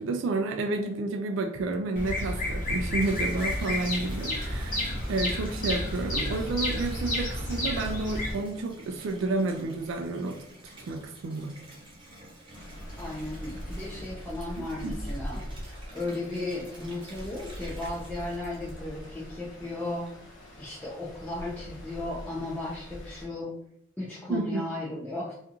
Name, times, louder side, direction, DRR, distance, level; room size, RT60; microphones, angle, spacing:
voice 1, 0.0-4.8 5.1-10.4 10.6-11.6 14.6-14.9 24.3-24.6, right 3 dB, 65° right, 4 dB, 0.3 m, -30 dB
Bird vocalization bird call bird song, 1.9-8.3, left 1 dB, 40° left, 0.8 m, -31 dB
Water tap faucet / Bathtub (filling or washing), 2.5-19.3 19.8-20.4, right 1 dB, 25° right, 0.7 m, -49 dB
Stream, 12.5-23.3, equal, 70° left, 0.9 m, -42 dB
voice 2, 13.0-15.4 15.9-20.1 20.6-23.6 24.0-25.3, left 2 dB, 5° left, -7 dB, 0.4 m, -35 dB
2.5 x 2.3 x 2.8 m, 0.73 s
head